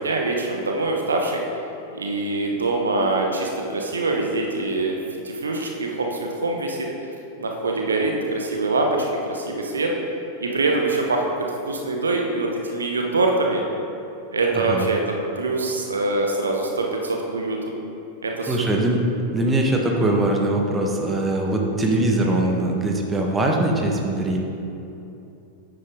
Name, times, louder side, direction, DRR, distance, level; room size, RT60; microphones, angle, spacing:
voice 1, 0.0-1.4 1.9-6.9 7.4-9.9 10.4-13.6 14.3-15.0 15.4-17.6 18.2-18.6 22.2-22.5, right 2 dB, 75° right, 1 dB, 1.0 m, -24 dB
voice 2, 14.5-14.9 18.5-19.0 19.3-24.4, right 1 dB, 15° right, 1 dB, 1.2 m, -22 dB
9.4 x 9.0 x 3.6 m, 2.8 s
figure-of-eight pair, 90°, 0 cm